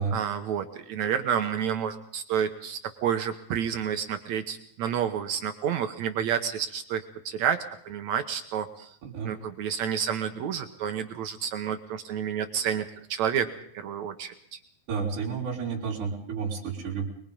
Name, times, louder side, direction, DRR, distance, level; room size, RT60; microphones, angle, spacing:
voice 1, 0.1-8.9 9.2-13.5 13.7-14.3, right 8 dB, 70° right, 7 dB, 1.8 m, -30 dB
voice 2, 14.9-17.1, right 5 dB, 55° right, -6 dB, 4.3 m, -31 dB
23.0 x 22.0 x 5.4 m, 0.64 s
omnidirectional pair, 4.4 m